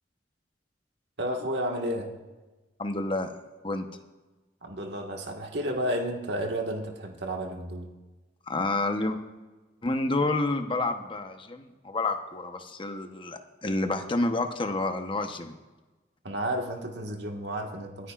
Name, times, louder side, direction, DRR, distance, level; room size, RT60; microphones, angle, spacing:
voice 1, 1.2-2.1 4.6-7.9 16.2-18.1, equal, 65° right, 2 dB, 1.7 m, -32 dB
voice 2, 2.8-3.3 3.6-3.9 8.5-9.2 9.8-15.6, left 2 dB, 30° left, 6 dB, 0.9 m, -29 dB
26.5 x 9.8 x 2.5 m, 1.2 s
head